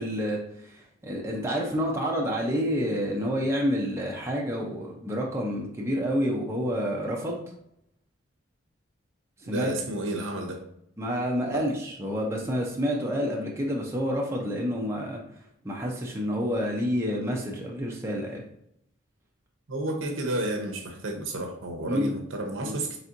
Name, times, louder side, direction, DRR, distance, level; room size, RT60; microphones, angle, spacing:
voice 1, 0.0-7.4 9.4-9.7 11.0-15.2 15.6-18.4 21.9-22.1 22.6-22.8, equal, 15° right, -2 dB, 0.5 m, -29 dB
voice 2, 9.5-10.6 11.5-11.7 19.7-23.0, right 1 dB, 70° right, 2 dB, 0.8 m, -31 dB
4.2 x 3.4 x 2.6 m, 0.75 s
head